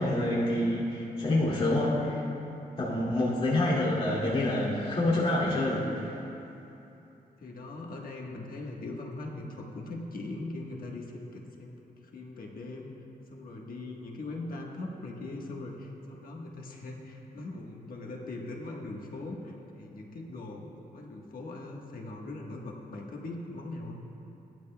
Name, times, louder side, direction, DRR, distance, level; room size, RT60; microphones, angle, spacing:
voice 1, 0.0-2.2 2.8-6.2, left 1 dB, 40° left, -9 dB, 2.6 m, -27 dB
voice 2, 7.4-11.8 12.0-12.9 13.3-24.0, left 2 dB, 70° left, -1 dB, 1.4 m, -40 dB
17.5 x 12.0 x 2.3 m, 2.9 s
cardioid pair, 100°, 15 cm